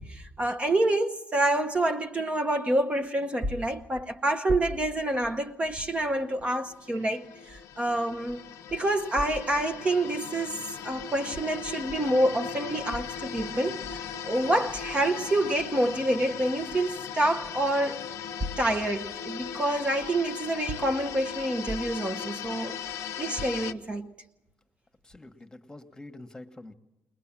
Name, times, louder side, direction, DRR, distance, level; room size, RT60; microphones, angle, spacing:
voice 1, 0.0-8.4 8.7-14.0 14.3-18.1 18.6-22.8 23.2-24.1, right 1 dB, 25° right, 0.9 m, -27 dB
sound 1, 6.0-23.7, left 8 dB, 80° left, 0.7 m, -38 dB
voice 2, 25.0-26.7, left 2 dB, 15° left, 1.4 m, -46 dB
20.5 x 20.5 x 7.4 m
cardioid pair, 100°, 5 cm